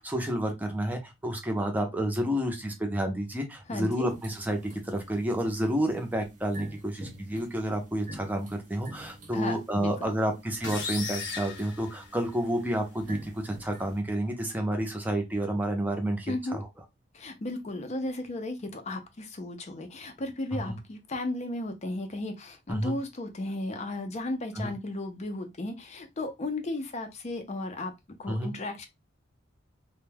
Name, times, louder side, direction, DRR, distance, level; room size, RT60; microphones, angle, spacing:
voice 1, 0.0-16.7 20.5-20.8 22.7-23.0 24.6-24.7 28.3-28.5, right 1 dB, 10° right, 0.6 m, -30 dB
voice 2, 3.7-4.1 9.3-10.1 16.3-16.6 17.1-28.9, left 2 dB, 40° left, 0.5 m, -35 dB
sound 1, 4.1-14.0, right 1 dB, 45° right, 0.7 m, -48 dB
sound 2, 10.6-12.6, left 5 dB, 75° left, 0.8 m, -36 dB
2.2 x 2.2 x 3.2 m
head